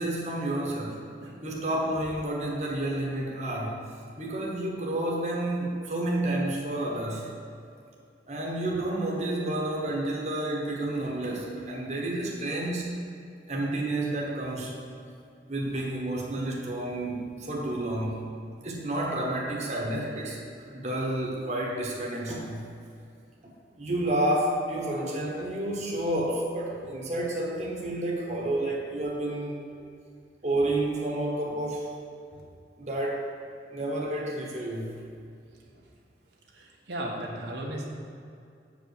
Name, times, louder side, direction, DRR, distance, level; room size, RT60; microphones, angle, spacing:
voice 1, 0.0-1.0 1.4-3.9 4.2-7.3 8.3-12.9 13.5-14.8 15.5-18.2 18.6-20.4 20.7-22.6 23.8-29.6 30.4-31.9 32.8-33.3 33.7-35.0, right 1 dB, 40° right, -2 dB, 1.2 m, -30 dB
voice 2, 36.5-37.9, right 1 dB, 80° right, -2 dB, 1.2 m, -37 dB
7.5 x 5.2 x 6.6 m, 2.4 s
head